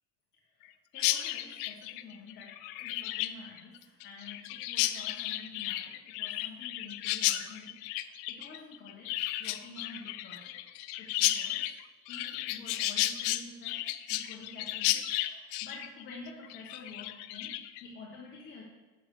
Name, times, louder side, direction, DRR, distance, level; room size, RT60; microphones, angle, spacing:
voice 1, 0.9-2.5 2.8-10.5 11.0-11.6 12.1-13.8 14.1-18.6, left 3 dB, 35° left, -3 dB, 1.2 m, -49 dB
Chirp tweet, 1.0-17.8, left 15 dB, 85° left, 0.5 m, -33 dB
7.9 x 7.2 x 3.2 m, 1.3 s
cardioid pair, 140°, 31 cm